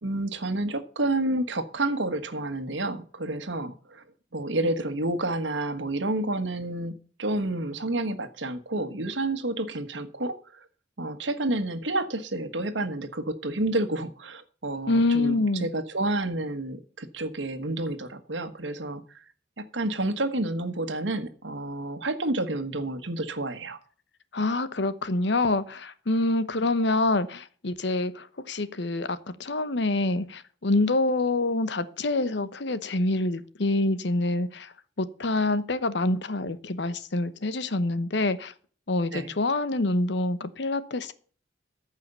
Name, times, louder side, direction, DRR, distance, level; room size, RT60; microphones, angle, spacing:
voice 1, 0.0-4.0 4.3-10.6 11.0-19.0 19.6-23.8 39.1-39.3, right 2 dB, 80° right, 1.5 m, -29 dB
voice 2, 14.9-15.7 24.3-34.7 35.0-38.5 38.9-41.1, left 2 dB, 70° left, 1.0 m, -26 dB
14.5 x 5.6 x 6.8 m
head